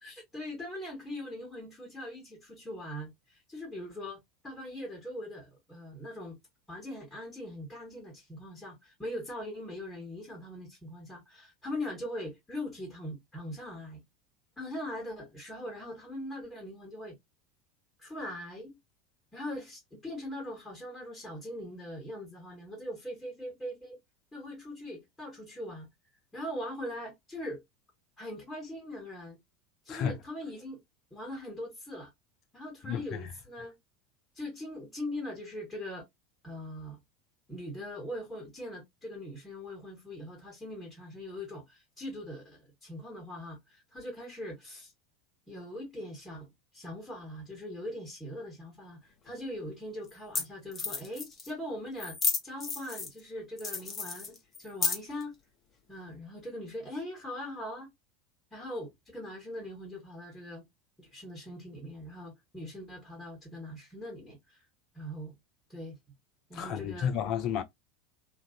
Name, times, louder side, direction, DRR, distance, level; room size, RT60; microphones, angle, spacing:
voice 1, 0.0-6.4 6.7-14.0 14.6-17.2 18.0-18.8 19.3-24.0 24.3-25.9 26.3-27.6 28.2-29.4 29.8-30.8 31.1-32.1 32.5-33.8 34.3-36.1 36.4-37.0 37.5-44.9 45.5-52.2 52.4-55.4 55.9-57.9 58.5-60.7 61.0-64.6 64.9-65.3 65.7-66.0 66.5-67.2, left 1 dB, 10° left, 1.2 m, -41 dB
voice 2, 32.8-33.2 66.5-67.6, left 8 dB, 40° left, 0.4 m, -32 dB
sound 1, 49.3-49.4 50.1-50.2 50.3-50.4 50.7-51.5 52.0-53.2 53.6-55.2, left 4 dB, 25° left, 0.8 m, -32 dB
2.5 x 2.4 x 2.3 m
figure-of-eight pair, 75°, 0 cm